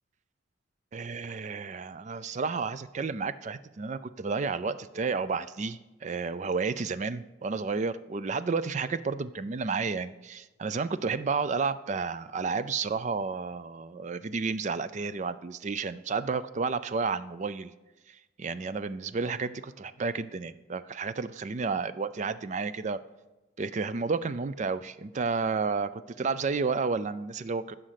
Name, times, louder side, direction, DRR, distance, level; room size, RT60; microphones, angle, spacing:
voice 1, 0.9-17.7 18.4-23.0 23.6-27.8, right 4 dB, 35° right, 14 dB, 0.4 m, -31 dB
15.0 x 6.4 x 5.8 m, 1.1 s
head